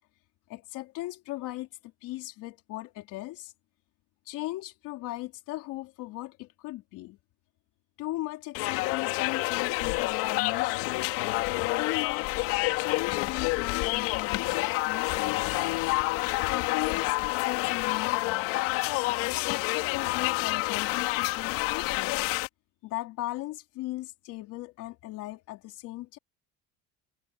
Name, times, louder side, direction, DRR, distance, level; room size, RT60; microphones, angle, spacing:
voice 1, 0.5-3.5 4.3-7.2 8.0-11.0 11.8-12.5 12.8-14.6 14.8-15.6 16.4-18.5 19.1-22.2 22.8-26.2, left 17 dB, 65° left, 4.0 m, -38 dB
sound 1, 8.5-22.5, left 21 dB, 90° left, 2.8 m, -28 dB
cardioid pair, 150°, 33 cm